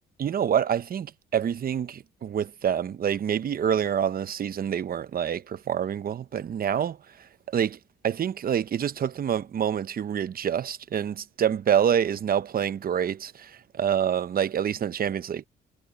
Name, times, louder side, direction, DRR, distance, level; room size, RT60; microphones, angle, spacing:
voice 1, 0.2-7.0 7.5-7.8 8.0-15.5, right 9 dB, 50° right, 0.8 m, -27 dB
cardioid pair, 90°, 20 cm